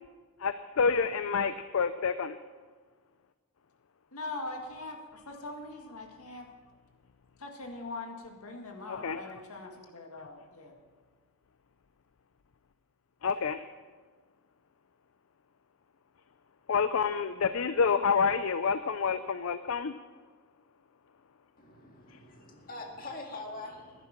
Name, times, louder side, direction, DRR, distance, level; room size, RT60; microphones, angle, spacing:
voice 1, 0.4-2.4 8.9-9.2 13.2-13.6 16.7-19.9 22.1-22.2, left 5 dB, 70° left, 12 dB, 0.5 m, -28 dB
voice 2, 4.1-6.5 7.4-10.7, left 2 dB, 85° left, 3 dB, 1.9 m, -42 dB
voice 3, 21.6-24.1, left 2 dB, 40° left, 1 dB, 2.0 m, -43 dB
14.5 x 11.0 x 6.0 m, 1.4 s
head